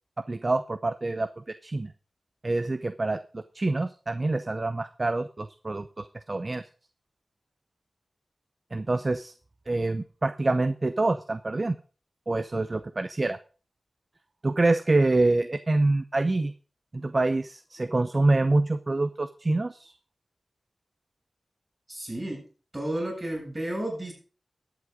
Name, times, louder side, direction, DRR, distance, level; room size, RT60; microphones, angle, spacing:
voice 1, 0.3-1.9 2.4-6.6 8.7-9.3 9.7-11.8 12.3-13.4 14.4-16.5 16.9-19.9, right 2 dB, 45° right, 12 dB, 0.7 m, -26 dB
voice 2, 21.9-22.4 22.7-24.1, right 1 dB, 25° right, -1 dB, 7.9 m, -32 dB
11.5 x 8.2 x 5.2 m, 0.37 s
cardioid pair, 45°, 0 cm